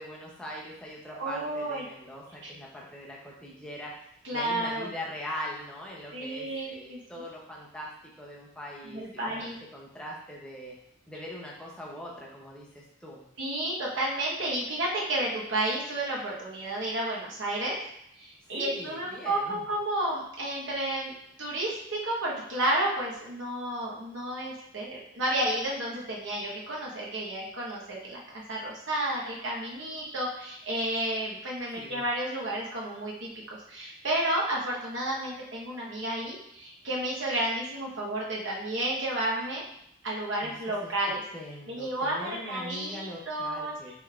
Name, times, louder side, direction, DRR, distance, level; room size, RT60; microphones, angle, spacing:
voice 1, 0.0-3.9 4.3-7.9 8.2-10.8 11.1-13.2 18.5-19.6 31.8-32.0 40.4-40.5 40.8-40.9 41.3-43.9, left 1 dB, 5° left, -4 dB, 0.6 m, -41 dB
voice 2, 1.1-1.8 2.4-2.5 4.2-4.9 6.1-7.0 8.8-9.6 13.4-17.8 18.2-21.1 21.4-39.6 40.0-41.2 41.7-43.9, right 1 dB, 60° right, -4 dB, 1.1 m, -31 dB
5.1 x 3.2 x 2.4 m, 0.74 s
head